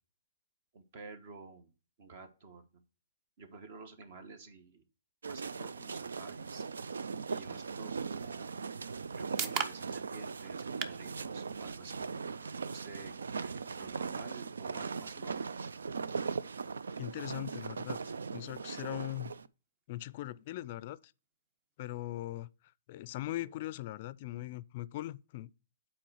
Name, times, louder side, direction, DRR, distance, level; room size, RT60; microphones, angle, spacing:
voice 1, 0.7-1.7 2.0-2.6 3.4-4.8 5.3-6.6 7.3-8.6 9.1-12.0 12.7-15.4, right 4 dB, 50° right, 1.1 m, -51 dB
sound 1, 5.2-19.5, right 5 dB, 90° right, 0.3 m, -39 dB
voice 2, 17.0-18.0 18.3-19.3 19.9-21.1 21.8-22.5 22.9-25.5, left 15 dB, 45° left, 0.4 m, -40 dB
sound 2, 22.5-22.6, right 6 dB, 30° right, 0.7 m, -47 dB
7.6 x 4.3 x 4.7 m
hypercardioid pair, 145°, 0 cm